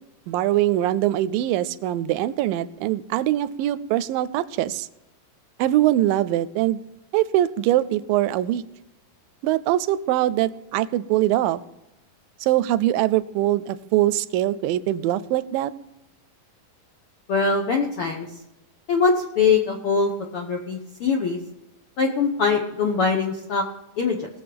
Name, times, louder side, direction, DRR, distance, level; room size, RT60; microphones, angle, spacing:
voice 1, 0.3-4.9 5.6-6.8 7.1-8.6 9.4-11.6 12.4-15.7, right 14 dB, 85° right, 17 dB, 2.3 m, -22 dB
voice 2, 17.3-18.3 18.9-21.4 22.0-23.6 24.0-24.2, left 5 dB, 70° left, 2 dB, 1.3 m, -22 dB
19.5 x 7.3 x 5.1 m, 0.94 s
omnidirectional pair, 4.0 m